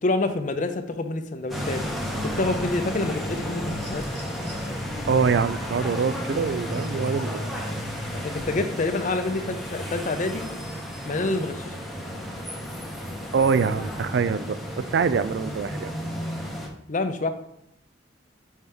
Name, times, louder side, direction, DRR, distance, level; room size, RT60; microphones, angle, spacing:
voice 1, 0.0-1.8 2.2-4.0 8.2-10.5 11.1-11.8 16.9-17.3, left 2 dB, 45° left, 8 dB, 0.6 m, -27 dB
sound 1, 1.5-16.7, equal, ahead, 0.9 m, -32 dB
sound 2, 3.6-4.7 6.2-6.3, right 2 dB, 85° right, 1.8 m, -47 dB
voice 2, 5.1-7.4 13.3-15.9, right 5 dB, 65° right, 14 dB, 0.3 m, -24 dB
6.1 x 5.5 x 3.5 m, 0.75 s
head